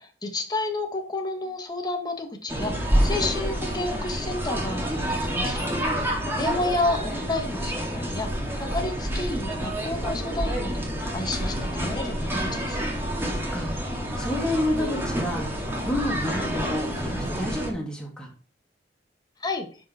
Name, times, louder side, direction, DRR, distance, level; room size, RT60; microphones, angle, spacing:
voice 1, 0.0-6.1 6.4-12.8 19.4-19.7, left 2 dB, 25° left, 3 dB, 1.7 m, -31 dB
sound 1, 2.5-17.7, equal, 15° right, 2.2 m, -28 dB
voice 2, 13.3-13.8 14.2-15.5 15.8-18.3, left 1 dB, 5° left, -2 dB, 2.9 m, -29 dB
11.0 x 5.3 x 4.9 m, 0.38 s
head